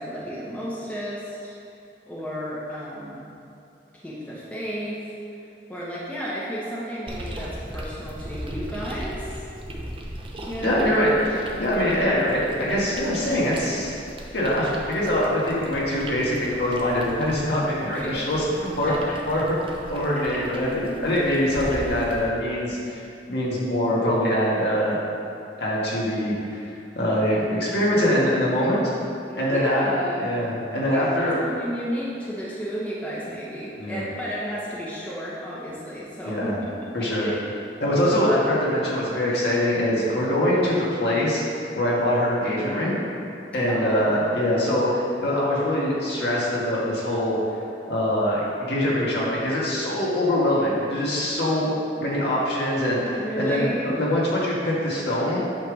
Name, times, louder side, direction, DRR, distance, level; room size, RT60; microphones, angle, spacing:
voice 1, 0.0-1.6 2.1-3.2 3.9-5.0 5.7-9.4 10.4-10.9 17.9-18.2 18.9-19.2 20.2-20.6 29.3-30.3 30.9-36.7 37.0-37.4 43.7-44.1 53.2-53.9, equal, 10° left, -7 dB, 1.0 m, -33 dB
sound 1, 7.1-22.3, equal, 30° right, 0.8 m, -38 dB
voice 2, 10.6-13.9 14.3-18.9 19.3-19.6 19.9-25.0 25.6-26.7 26.9-28.8 29.4-29.9 30.2-31.4 33.8-34.0 36.2-36.6 36.9-37.3 37.8-41.4 41.7-42.9 43.5-47.4 47.9-51.7 52.0-55.4, left 1 dB, 65° left, -6 dB, 1.7 m, -23 dB
8.6 x 3.4 x 6.3 m, 2.6 s
head